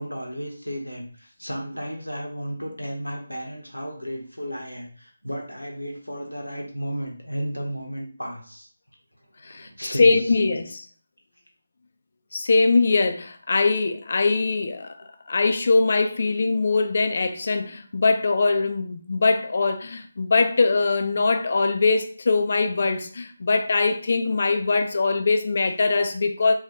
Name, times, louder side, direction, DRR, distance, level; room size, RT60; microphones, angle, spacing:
voice 1, 0.0-8.7 9.4-10.3, equal, 90° left, 0.8 m, -34 dB
voice 2, 10.0-10.8 12.3-15.0 15.3-26.5, left 3 dB, 45° left, 0.3 m, -22 dB
3.3 x 2.2 x 2.6 m
figure-of-eight pair, 155°, 0 cm